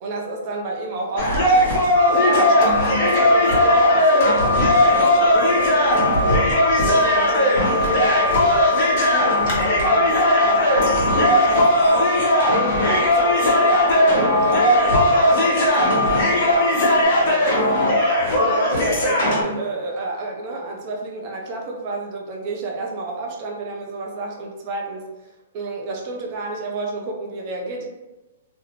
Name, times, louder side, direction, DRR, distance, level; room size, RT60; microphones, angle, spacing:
voice 1, 0.0-1.8 2.2-6.4 6.8-12.2 12.5-18.1 18.4-25.0 25.5-27.9, right 2 dB, 35° right, 0 dB, 0.5 m, -30 dB
sound 1, 1.2-19.4, left 1 dB, 50° left, 0.9 m, -18 dB
sound 2, 1.9-17.0, left 3 dB, 70° right, 0.9 m, -25 dB
2.5 x 2.0 x 2.9 m, 1.0 s
hypercardioid pair, 150°, 0 cm